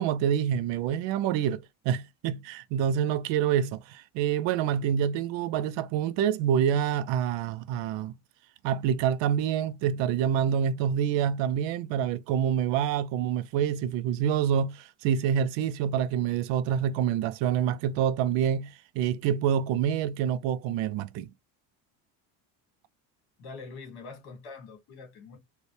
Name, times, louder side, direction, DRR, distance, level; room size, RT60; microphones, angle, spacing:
voice 1, 0.0-8.2 8.6-21.3, right 9 dB, 75° right, 0.6 m, -27 dB
voice 2, 23.4-25.4, left 4 dB, 55° left, 2.2 m, -44 dB
4.3 x 2.3 x 3.2 m
cardioid pair, 140°, 45 cm